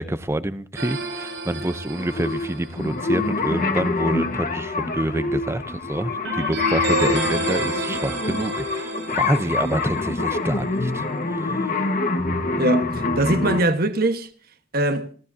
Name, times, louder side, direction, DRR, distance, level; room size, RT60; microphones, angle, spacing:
voice 1, 0.0-11.1 11.3-11.6, right 1 dB, 15° right, 0.7 m, -27 dB
sound 1, 0.8-3.1 6.2-10.7, right 2 dB, 90° right, 7.6 m, -30 dB
sound 2, 2.0-13.6, left 3 dB, 45° left, 1.5 m, -25 dB
voice 2, 12.6-14.3 14.7-15.1, right 2 dB, 50° right, 1.4 m, -22 dB
29.0 x 14.5 x 2.8 m
head